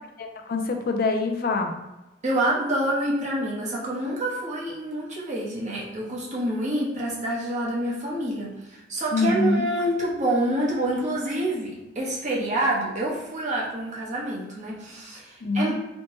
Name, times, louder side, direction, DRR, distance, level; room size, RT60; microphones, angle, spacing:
voice 1, 0.2-1.7 9.1-9.6 15.4-15.7, left 3 dB, 50° left, 4 dB, 0.4 m, -24 dB
voice 2, 2.2-15.7, right 1 dB, 40° right, -4 dB, 0.9 m, -27 dB
4.2 x 2.2 x 3.0 m, 1.0 s
head